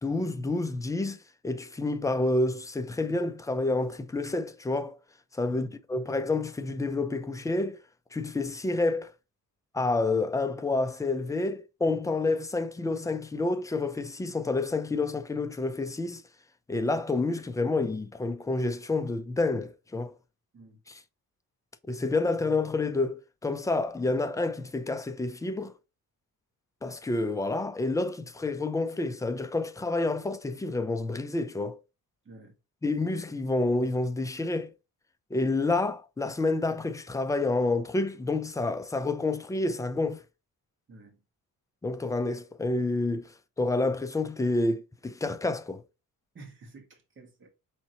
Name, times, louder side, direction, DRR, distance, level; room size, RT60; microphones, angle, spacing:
voice 1, 0.0-5.0 5.3-7.8 8.1-9.1 9.7-16.2 16.7-20.1 20.9-21.0 21.9-25.7 26.8-31.8 32.8-34.7 35.3-40.2 41.8-43.3 43.6-45.8, left 2 dB, 10° left, 0.3 m, -29 dB
voice 2, 40.9-41.2 46.3-47.5, right 2 dB, 35° right, 1.5 m, -50 dB
4.4 x 3.6 x 2.8 m
cardioid pair, 140°, 35 cm